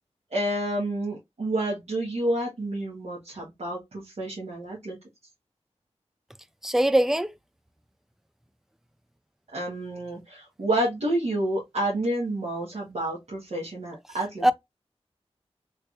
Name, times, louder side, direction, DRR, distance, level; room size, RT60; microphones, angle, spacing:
voice 1, 0.3-5.0 9.5-14.4, right 1 dB, 80° right, 1.4 m, -29 dB
voice 2, 6.6-7.3 14.4-14.5, right 1 dB, 5° right, 0.3 m, -21 dB
3.3 x 3.2 x 2.5 m
wide cardioid pair, 80°, 11 cm